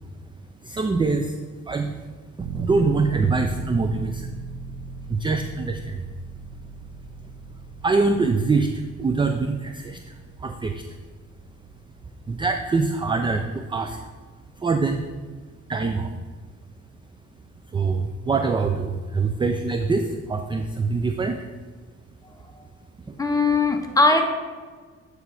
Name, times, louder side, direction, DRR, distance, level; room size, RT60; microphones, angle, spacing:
voice 1, 0.6-1.4 1.7-2.1 2.5-4.3 5.1-6.1 7.8-10.8 12.3-14.0 14.6-15.0 15.7-16.1 17.7-21.4 23.1-23.2, right 4 dB, 15° right, 6 dB, 0.4 m, -24 dB
sound 1, 2.4-14.9 15.3-15.4, right 4 dB, 50° right, 0.8 m, -38 dB
voice 2, 23.2-24.2, left 3 dB, 10° left, 3 dB, 0.9 m, -19 dB
8.9 x 3.2 x 4.7 m, 1.5 s
cardioid pair, 90°, 30 cm